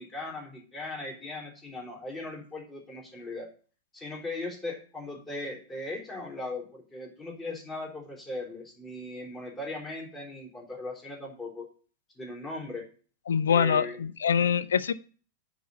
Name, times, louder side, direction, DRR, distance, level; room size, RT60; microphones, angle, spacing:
voice 1, 0.0-3.5 3.9-11.6 12.2-12.8 13.5-14.0, left 2 dB, 20° left, -1 dB, 3.8 m, -38 dB
voice 2, 13.3-14.9, left 7 dB, 65° left, 17 dB, 0.5 m, -24 dB
9.3 x 4.3 x 6.7 m, 0.40 s
figure-of-eight pair, 90°, 0 cm